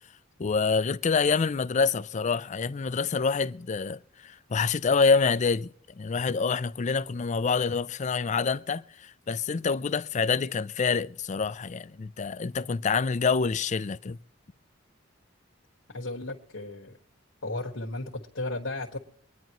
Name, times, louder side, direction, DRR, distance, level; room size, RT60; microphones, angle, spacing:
voice 1, 0.4-5.7 6.0-14.2, left 5 dB, 35° left, 0.4 m, -26 dB
voice 2, 15.9-16.9 17.4-19.0, left 2 dB, 90° left, 1.6 m, -34 dB
24.0 x 10.5 x 3.0 m
head